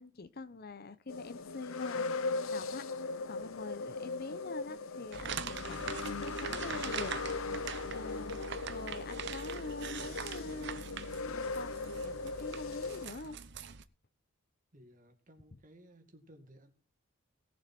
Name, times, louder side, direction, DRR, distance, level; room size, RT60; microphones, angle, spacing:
voice 1, 0.0-7.1 7.9-8.4 8.7-10.8 11.3-13.4, left 3 dB, 45° left, 14 dB, 0.7 m, -45 dB
sound 1, 1.1-13.1, left 3 dB, 80° left, 0.8 m, -39 dB
sound 2, 5.1-13.8, right 6 dB, 55° right, 0.8 m, -43 dB
voice 2, 14.7-16.7, equal, 40° right, 6 dB, 2.2 m, -58 dB
18.0 x 7.3 x 4.4 m, 0.36 s
head